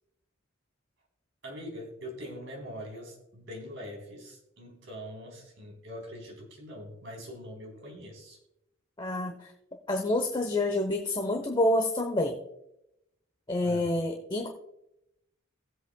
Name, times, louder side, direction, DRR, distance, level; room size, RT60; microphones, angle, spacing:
voice 1, 1.4-8.4 13.6-13.9, equal, 65° right, 0 dB, 3.7 m, -43 dB
voice 2, 9.0-9.5 9.9-12.4 13.5-14.5, left 1 dB, 20° left, 3 dB, 0.9 m, -28 dB
18.5 x 8.1 x 2.3 m, 0.83 s
head